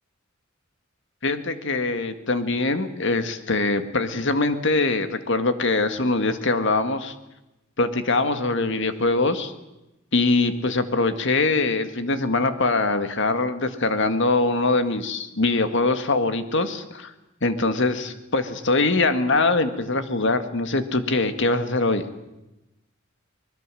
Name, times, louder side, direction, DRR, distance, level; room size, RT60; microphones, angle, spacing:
voice 1, 1.2-7.1 7.8-9.5 10.1-17.1 17.4-22.0, left 3 dB, 65° left, 9 dB, 2.0 m, -23 dB
24.5 x 21.0 x 7.7 m, 0.95 s
head